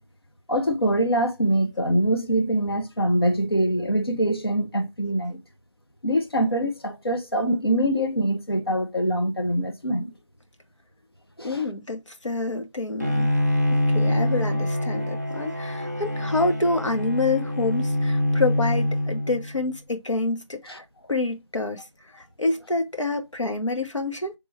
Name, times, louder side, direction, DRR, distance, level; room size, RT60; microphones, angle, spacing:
voice 1, 0.5-5.4 6.0-10.1 11.4-11.6 20.7-20.8, right 1 dB, 50° left, 0.9 m, -24 dB
voice 2, 11.4-13.3 13.9-20.8 21.1-21.8 22.1-24.3, left 2 dB, 75° left, 1.2 m, -27 dB
Bowed string instrument, 13.0-19.7, left 1 dB, 35° right, 0.5 m, -25 dB
3.6 x 2.8 x 4.5 m
figure-of-eight pair, 180°, 16 cm